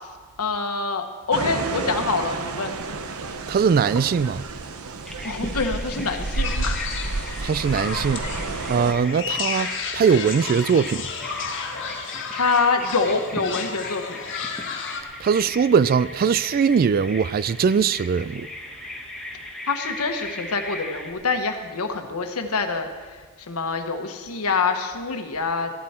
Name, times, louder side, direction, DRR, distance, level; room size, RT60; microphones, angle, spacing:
voice 1, 0.4-2.7 5.2-6.8 12.3-14.2 19.7-22.9 23.5-25.7, left 4 dB, 90° left, 1.3 m, -25 dB
sound 1, 1.3-8.9, right 3 dB, 80° right, 0.8 m, -30 dB
voice 2, 3.5-4.4 7.4-8.2 8.7-11.0 15.2-18.5, right 6 dB, 45° right, 0.3 m, -21 dB
Bird vocalization bird call bird song, 5.0-21.1, left 1 dB, ahead, 1.3 m, -39 dB
sound 2, 6.4-15.0, left 5 dB, 60° left, 1.5 m, -32 dB
15.0 x 12.0 x 4.4 m
head